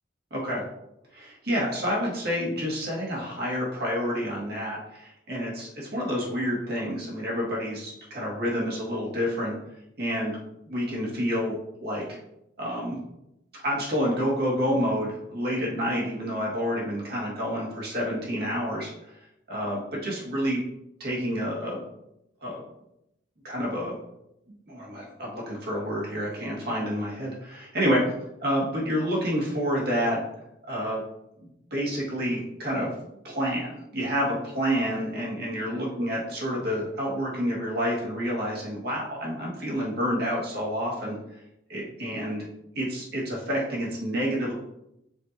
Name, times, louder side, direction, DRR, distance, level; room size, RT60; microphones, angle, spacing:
voice 1, 0.3-0.6 1.1-9.6 10.0-10.4 10.7-11.6 11.8-12.2 12.6-13.0 13.6-19.2 19.5-20.6 21.0-21.8 22.4-22.6 23.4-24.0 24.5-28.0 28.4-30.2 30.7-31.0 31.7-41.2 41.7-42.5 42.8-44.5, equal, 55° right, -4 dB, 2.1 m, -29 dB
6.7 x 4.7 x 3.0 m, 0.84 s
head